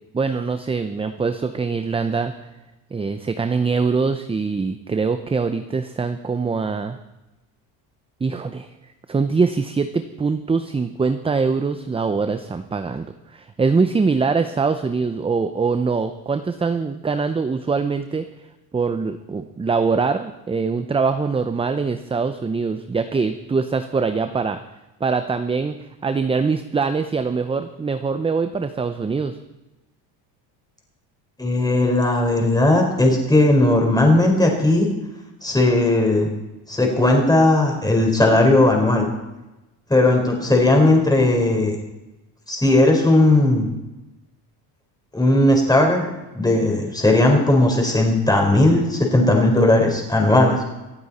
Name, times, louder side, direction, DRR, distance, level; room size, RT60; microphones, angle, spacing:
voice 1, 0.1-2.3 2.9-7.0 8.2-8.7 9.1-13.1 13.3-18.2 18.7-24.6 25.0-25.7 26.0-29.4, right 4 dB, 15° right, 9 dB, 0.6 m, -23 dB
voice 2, 31.4-34.9 35.4-36.3 36.7-39.1 39.9-41.7 42.5-43.7 45.1-46.1 46.3-50.6, left 2 dB, 10° left, 1 dB, 4.3 m, -17 dB
25.5 x 8.8 x 4.2 m, 1.0 s
supercardioid pair, 110°, 45 cm